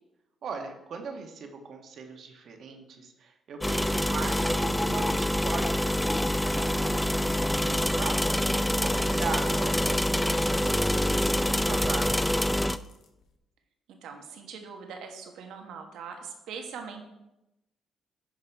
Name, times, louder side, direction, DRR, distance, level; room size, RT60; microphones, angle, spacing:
voice 1, 0.4-12.1, right 5 dB, 65° right, 4 dB, 1.3 m, -40 dB
sound 1, 3.6-12.8, left 1 dB, 10° left, 0.3 m, -26 dB
voice 2, 9.4-9.8 14.0-17.0, right 6 dB, 85° right, 4 dB, 1.4 m, -41 dB
sound 2, 10.4-13.4, left 6 dB, 75° left, 1.0 m, -53 dB
10.5 x 4.9 x 4.7 m, 0.93 s
cardioid pair, 90°, 0 cm